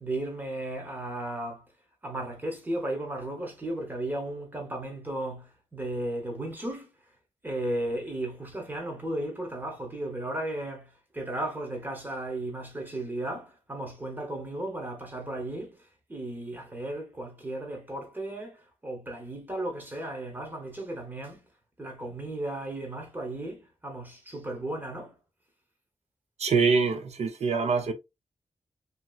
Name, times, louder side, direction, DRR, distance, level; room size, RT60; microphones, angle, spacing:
voice 1, 0.0-1.6 2.0-6.9 7.4-15.8 16.1-21.4 21.8-25.1, right 1 dB, 15° right, 0.9 m, -35 dB
voice 2, 26.4-27.9, right 5 dB, 60° right, 0.6 m, -24 dB
2.9 x 2.8 x 2.3 m
wide cardioid pair, 170°, 13 cm